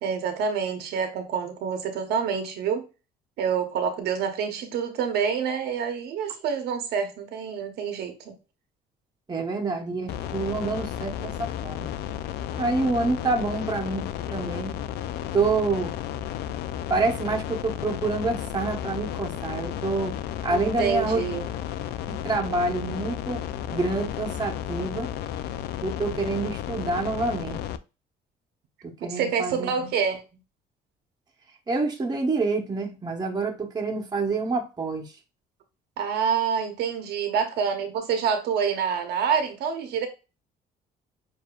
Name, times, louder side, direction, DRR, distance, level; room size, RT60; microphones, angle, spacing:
voice 1, 0.0-2.8 3.4-8.3 20.5-21.4 29.1-30.2 36.0-40.1, right 7 dB, 75° right, 0.9 m, -27 dB
voice 2, 9.3-11.9 12.6-14.0 14.3-14.8 15.3-15.9 16.9-21.2 22.1-23.4 23.7-25.1 25.8-27.6 28.8-29.9 31.7-35.1, right 3 dB, 25° right, 1.0 m, -27 dB
sound 1, 10.1-27.8, left 11 dB, 75° left, 0.4 m, -33 dB
6.7 x 2.7 x 2.4 m
cardioid pair, 110°, 17 cm